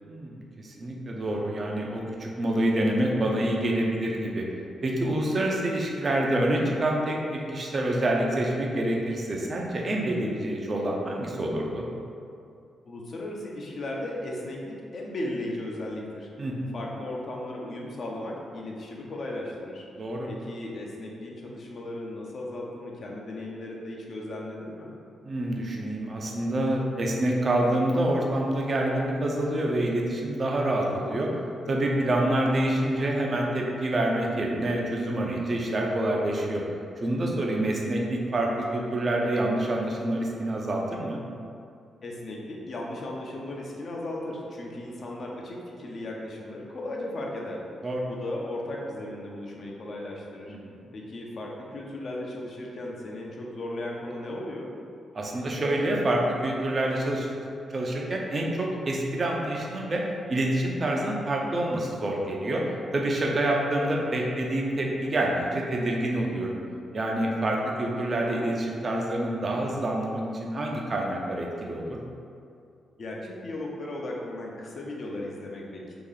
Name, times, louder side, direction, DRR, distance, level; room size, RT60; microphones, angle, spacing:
voice 1, 0.0-4.4 4.8-11.8 16.4-16.8 20.0-20.3 25.2-31.3 31.7-36.6 37.0-41.2 47.8-48.1 50.6-50.8 55.1-57.3 57.7-60.0 60.3-62.6 62.9-66.6 66.9-72.0, right 1 dB, 45° right, -1 dB, 0.6 m, -27 dB
voice 2, 12.9-16.3 16.7-19.8 20.3-24.9 42.0-47.6 48.0-50.5 50.9-54.7 73.0-76.0, left 1 dB, 60° left, -2 dB, 0.7 m, -36 dB
2.9 x 2.7 x 3.9 m, 2.5 s
supercardioid pair, 50°, 0 cm